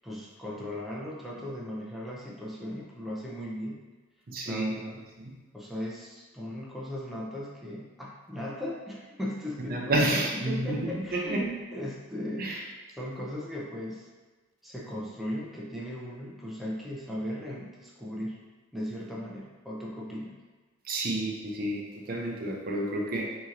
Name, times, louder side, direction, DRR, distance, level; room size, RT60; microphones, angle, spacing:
voice 1, 0.0-3.8 4.4-5.0 5.5-12.5 13.0-14.1 14.6-18.4 18.7-20.4, equal, ahead, -5 dB, 0.6 m, -37 dB
voice 2, 4.3-4.8 5.2-5.3 9.7-11.4 12.4-12.6 20.9-23.4, right 1 dB, 45° right, -1 dB, 0.5 m, -30 dB
6.0 x 2.9 x 2.5 m, 1.3 s
head